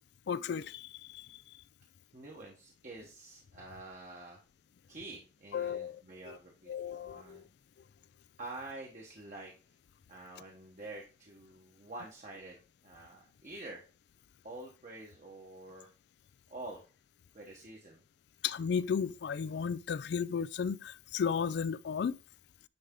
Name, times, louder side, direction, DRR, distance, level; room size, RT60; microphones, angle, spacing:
voice 1, 0.3-1.4 5.5-6.4 6.7-7.5 18.4-22.2, left 6 dB, 65° left, 0.3 m, -34 dB
voice 2, 2.1-4.4 4.9-7.5 8.4-9.5 10.1-13.8 14.4-15.9 16.5-16.8 17.3-18.0, right 2 dB, 45° right, 1.2 m, -47 dB
9.6 x 3.4 x 3.7 m
head